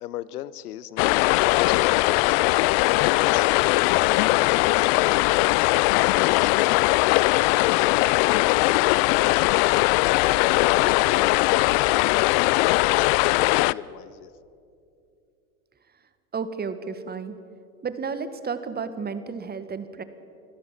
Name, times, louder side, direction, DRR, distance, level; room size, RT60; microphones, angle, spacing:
voice 1, 0.0-2.5 3.1-6.9 7.6-14.3, left 12 dB, 75° left, 18 dB, 0.9 m, -37 dB
sound 1, 1.0-13.7, left 22 dB, 45° left, 0.4 m, -20 dB
voice 2, 16.3-17.4 17.8-20.0, right 5 dB, 20° right, 12 dB, 1.5 m, -32 dB
26.0 x 16.0 x 7.3 m, 2.5 s
hypercardioid pair, 90°, 46 cm